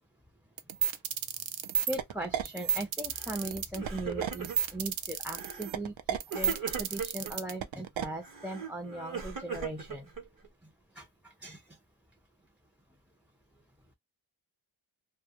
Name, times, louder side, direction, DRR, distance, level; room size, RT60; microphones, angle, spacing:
sound 1, 0.6-8.1, right 9 dB, 70° right, 0.5 m, -31 dB
voice 1, 1.9-10.1 10.9-11.6, right 1 dB, 5° right, 0.4 m, -39 dB
Crying sobbing, 3.2-3.5 3.7-4.8 5.3-5.7 6.3-7.3 8.2-10.5, right 6 dB, 45° right, 0.9 m, -39 dB
2.2 x 2.1 x 2.8 m
wide cardioid pair, 60°, 48 cm